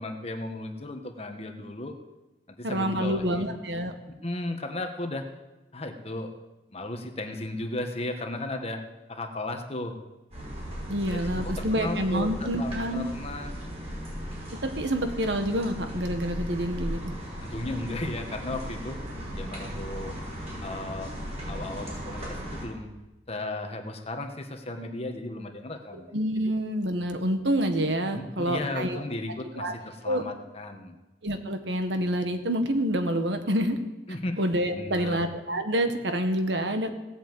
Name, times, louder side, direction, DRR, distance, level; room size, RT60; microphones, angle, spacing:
voice 1, 0.0-1.9 2.6-3.4 4.1-5.2 5.7-6.3 6.7-8.8 9.1-10.0 11.1-13.6 17.4-19.0 19.3-20.2 20.6-21.1 21.5-22.9 23.3-26.1 28.1-31.0 34.1-34.4 34.7-35.2, left 2 dB, 35° left, 5 dB, 1.4 m, -35 dB
voice 2, 2.6-3.9 10.9-13.1 14.6-17.1 25.9-29.0 29.6-29.7 30.0-30.2 31.2-33.8 34.4-36.9, equal, 75° right, 7 dB, 1.5 m, -27 dB
sound 1, 10.3-22.7, equal, 35° right, 5.7 m, -37 dB
17.5 x 8.2 x 7.9 m, 1.1 s
head